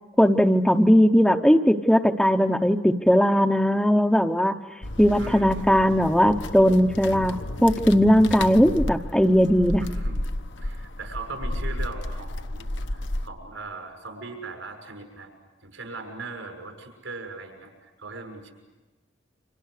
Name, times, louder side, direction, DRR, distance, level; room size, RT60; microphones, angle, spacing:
voice 1, 0.2-4.5 5.0-7.4 7.6-9.8, equal, 5° left, 3 dB, 0.8 m, -19 dB
sound 1, 4.8-13.3, left 1 dB, 65° left, 1.1 m, -32 dB
voice 2, 5.2-5.7 9.8-10.2 10.6-15.3 15.6-17.7 18.0-18.5, right 3 dB, 80° right, 3 dB, 6.7 m, -39 dB
30.0 x 26.0 x 6.6 m, 1.2 s
head